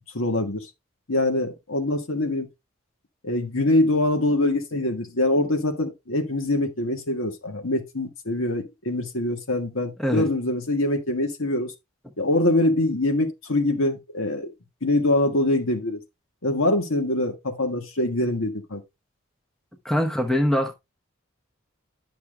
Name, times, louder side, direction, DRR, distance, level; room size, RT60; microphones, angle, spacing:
voice 1, 0.1-0.6 1.1-2.5 3.2-11.7 12.2-14.5 14.8-16.0 16.4-18.8, left 1 dB, 75° left, 1.6 m, -24 dB
voice 2, 19.8-20.7, equal, ahead, 0.9 m, -23 dB
10.5 x 5.9 x 2.2 m
head